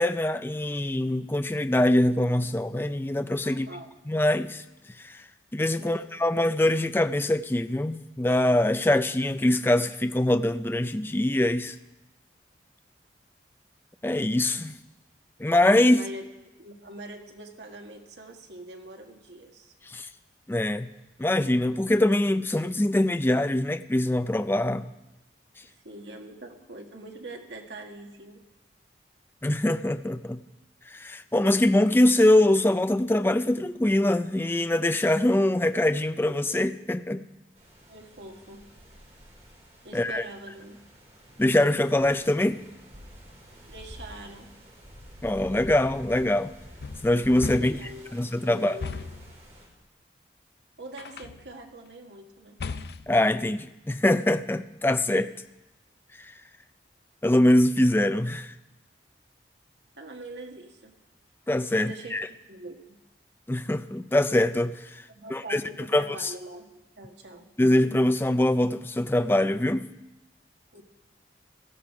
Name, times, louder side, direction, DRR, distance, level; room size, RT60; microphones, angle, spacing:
voice 1, 0.0-3.7 4.1-4.6 5.0-5.2 5.5-11.8 14.0-14.8 15.4-16.0 19.9-20.1 20.5-20.9 21.2-24.9 29.4-30.4 30.9-37.2 39.9-40.2 41.4-42.6 45.2-46.5 47.0-48.8 53.1-55.3 56.2-56.3 57.2-58.5 61.5-62.3 63.5-65.0 65.3-65.6 65.9-66.3 67.6-69.9, left 1 dB, 10° left, 0.4 m, -23 dB
voice 2, 3.4-3.9 5.7-6.1 15.8-16.2 16.6-19.7 25.6-28.4 37.9-38.7 39.8-40.8 43.7-44.5 47.5-49.2 50.8-52.6 60.0-60.9 61.7-63.0 65.1-67.5 70.7-70.8, right 1 dB, 80° right, 1.8 m, -44 dB
sound 1, 37.5-49.7, equal, 40° right, 4.0 m, -48 dB
sound 2, 46.8-48.0 48.8-49.3 51.0-51.5 52.6-53.2, left 4 dB, 65° left, 0.5 m, -36 dB
16.5 x 13.5 x 4.9 m
head